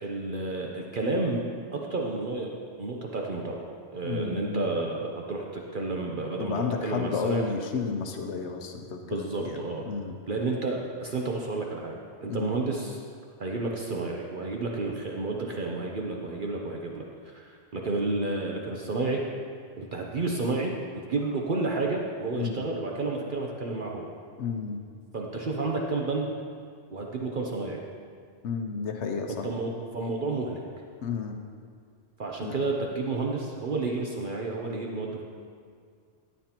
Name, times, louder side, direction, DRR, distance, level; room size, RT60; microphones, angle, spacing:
voice 1, 0.0-1.4 1.7-2.5 2.8-3.6 3.9-7.4 9.0-9.8 10.3-13.0 13.4-19.2 19.8-24.1 25.1-26.3 26.9-27.8 29.4-30.6 32.2-35.2, right 3 dB, 50° right, 0 dB, 0.9 m, -31 dB
voice 2, 4.0-4.6 6.4-10.2 12.3-12.5 22.4-22.7 24.4-24.8 28.4-29.4 31.0-31.4 32.4-32.6, left 5 dB, 90° left, 4 dB, 1.0 m, -32 dB
12.5 x 9.4 x 2.9 m, 2.1 s
omnidirectional pair, 1.2 m